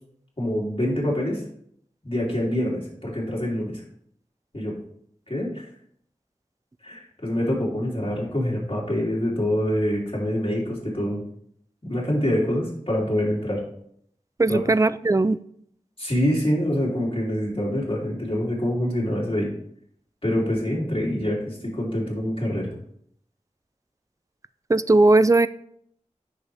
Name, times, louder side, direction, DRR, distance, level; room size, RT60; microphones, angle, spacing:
voice 1, 0.4-1.4 2.0-3.8 4.5-4.7 5.3-5.5 6.8-11.2 11.8-13.6 14.5-14.6 16.0-19.5 20.2-22.7, equal, 45° left, -5 dB, 3.4 m, -25 dB
voice 2, 14.4-15.4 24.7-25.5, right 2 dB, 25° right, 16 dB, 0.4 m, -18 dB
9.8 x 6.4 x 3.5 m, 0.67 s
wide cardioid pair, 45°, 13 cm